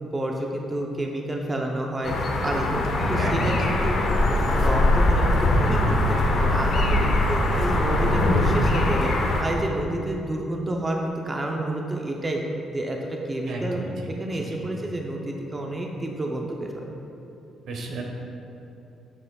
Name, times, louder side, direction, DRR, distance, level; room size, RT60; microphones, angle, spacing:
voice 1, 0.0-2.2 2.4-2.8 3.1-4.0 4.3-12.4 12.7-13.8 14.1-16.8, right 1 dB, 25° right, 0 dB, 0.6 m, -29 dB
sound 1, 2.0-9.4, left 1 dB, 60° left, 0.9 m, -21 dB
voice 2, 3.0-3.6 3.9-4.1 13.5-13.9 14.3-14.9 17.7-18.0, right 3 dB, 70° right, 0 dB, 1.1 m, -33 dB
8.6 x 6.6 x 2.4 m, 2.9 s
cardioid pair, 90°, 0 cm